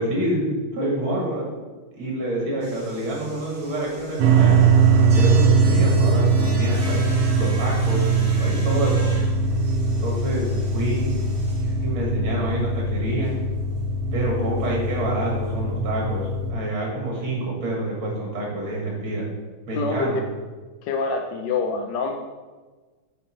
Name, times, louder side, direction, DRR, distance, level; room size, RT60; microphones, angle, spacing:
voice 1, 0.0-1.5 1.9-4.6 4.9-9.1 10.0-11.1 11.8-13.4 14.1-19.3 19.7-20.2, right 1 dB, 70° right, -3 dB, 2.7 m, -27 dB
sound 1, 2.6-11.9 12.3-12.4 12.7-12.8 13.1-13.4 13.7-13.8 14.1-14.2 15.5-15.6, right 2 dB, 40° right, 1.8 m, -41 dB
sound 2, 4.2-16.5, right 4 dB, 90° right, 1.7 m, -21 dB
voice 2, 19.7-20.1 20.9-22.2, left 4 dB, 70° left, 3 dB, 1.2 m, -25 dB
9.5 x 4.4 x 4.5 m, 1.4 s
omnidirectional pair, 2.4 m